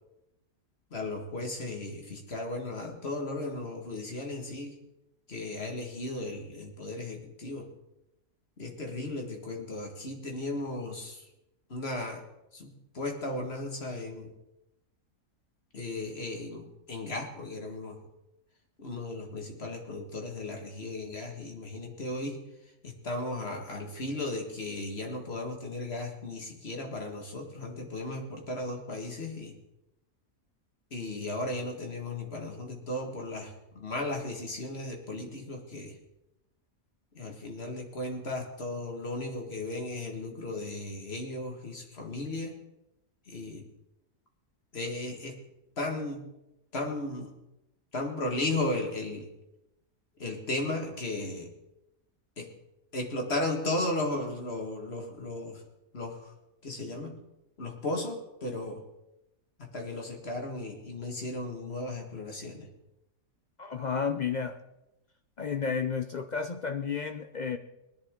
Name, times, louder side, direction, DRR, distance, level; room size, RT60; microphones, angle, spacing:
voice 1, 0.9-4.7 5.3-7.7 8.6-11.3 11.7-12.2 12.5-14.3 15.7-18.0 18.8-22.4 22.8-29.6 30.9-35.9 37.1-42.6 43.3-43.7 44.7-45.4 45.8-46.2 46.7-47.3 47.9-49.3 50.2-51.5 52.4-52.5 52.9-55.6 55.9-56.3 56.6-57.2 57.6-58.8 59.6-62.7, left 2 dB, 45° left, 2 dB, 2.0 m, -35 dB
voice 2, 63.6-64.6 65.4-67.6, left 6 dB, 60° left, 7 dB, 0.4 m, -32 dB
19.5 x 10.5 x 3.7 m, 0.91 s
omnidirectional pair, 1.5 m